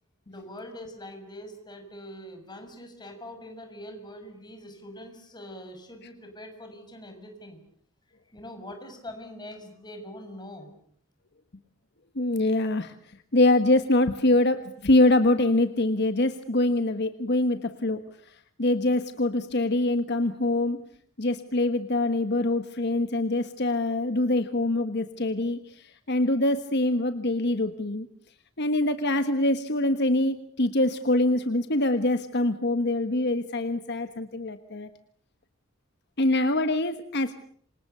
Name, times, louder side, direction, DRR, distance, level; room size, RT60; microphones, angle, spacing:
voice 1, 0.3-7.6 8.3-10.7, left 1 dB, 20° left, 5 dB, 6.4 m, -43 dB
voice 2, 12.1-20.8 21.2-28.1 28.6-34.9 36.2-37.3, left 2 dB, 55° left, 9 dB, 1.4 m, -24 dB
28.5 x 25.5 x 6.8 m, 0.62 s
head